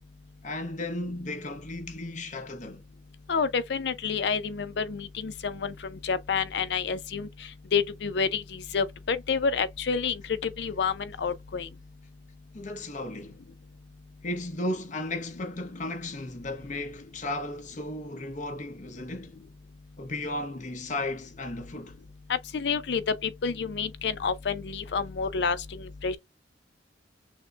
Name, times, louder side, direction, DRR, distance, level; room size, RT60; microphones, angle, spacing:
voice 1, 0.4-2.8 12.5-13.4 14.2-19.4 20.0-22.0, left 2 dB, 45° left, 0.9 m, -35 dB
voice 2, 3.3-7.3 7.7-8.4 8.7-11.7 22.5-26.2, left 5 dB, 65° left, 0.5 m, -29 dB
6.3 x 2.2 x 2.3 m
head